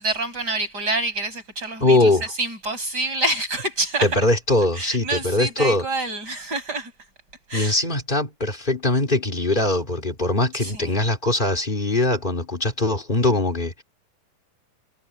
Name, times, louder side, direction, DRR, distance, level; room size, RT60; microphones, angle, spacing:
voice 1, 0.0-4.2 4.7-6.9 7.5-7.8 10.6-11.0, right 2 dB, 30° right, 7.3 m, -27 dB
voice 2, 1.8-2.2 4.0-5.8 7.5-13.8, left 2 dB, 15° left, 2.5 m, -21 dB
omnidirectional pair, 3.8 m